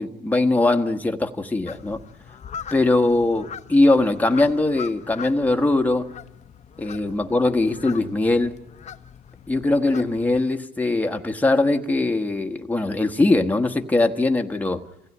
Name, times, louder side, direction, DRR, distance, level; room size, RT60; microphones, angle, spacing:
voice 1, 0.0-2.0 2.7-6.1 6.8-8.6 9.5-14.8, left 2 dB, 10° left, 1.3 m, -21 dB
sound 1, 1.7-10.4, left 7 dB, 40° left, 0.9 m, -41 dB
27.0 x 16.0 x 9.7 m
cardioid pair, 110°, 17 cm